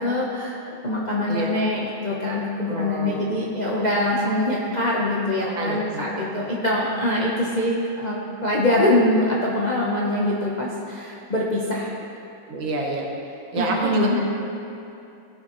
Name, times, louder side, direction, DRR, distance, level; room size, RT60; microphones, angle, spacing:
voice 1, 0.0-12.0 13.5-14.2, left 1 dB, 50° left, -5 dB, 0.5 m, -24 dB
voice 2, 2.7-3.2 3.8-3.9 4.2-4.3 5.4-6.4 12.4-13.1 13.5-14.2, right 2 dB, 85° right, -1 dB, 2.0 m, -28 dB
16.0 x 6.2 x 3.0 m, 2.7 s
omnidirectional pair, 2.1 m